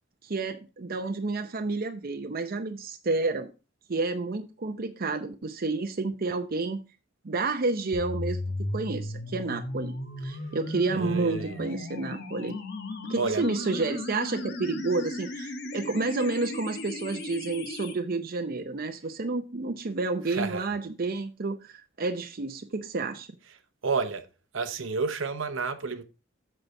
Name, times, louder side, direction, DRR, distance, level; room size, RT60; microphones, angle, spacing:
voice 1, 0.2-3.5 3.9-6.8 7.2-8.4 8.7-9.9 10.2-12.6 13.1-23.3, right 3 dB, 50° right, 0.6 m, -30 dB
sound 1, 7.9-17.9, left 2 dB, 55° left, 1.4 m, -36 dB
voice 2, 10.9-11.6 13.2-13.5 20.2-20.7 23.8-24.3 24.5-26.0, right 4 dB, 75° right, 0.9 m, -30 dB
8.0 x 5.6 x 4.6 m
head